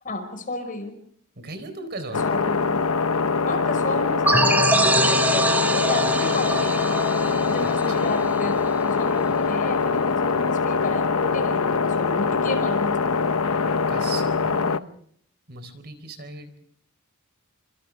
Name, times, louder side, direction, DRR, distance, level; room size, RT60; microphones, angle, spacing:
voice 1, 0.0-1.0 2.2-2.9 3.5-7.0 7.5-12.9, left 2 dB, 40° left, 6 dB, 5.4 m, -31 dB
voice 2, 1.4-2.2 7.6-7.7 13.9-14.9 15.5-16.6, right 2 dB, 50° right, 10 dB, 4.3 m, -37 dB
sound 1, 2.1-14.8, left 5 dB, 80° left, 0.8 m, -23 dB
sound 2, 4.3-8.7, right 2 dB, 10° right, 1.6 m, -23 dB
30.0 x 26.0 x 3.6 m, 0.64 s
head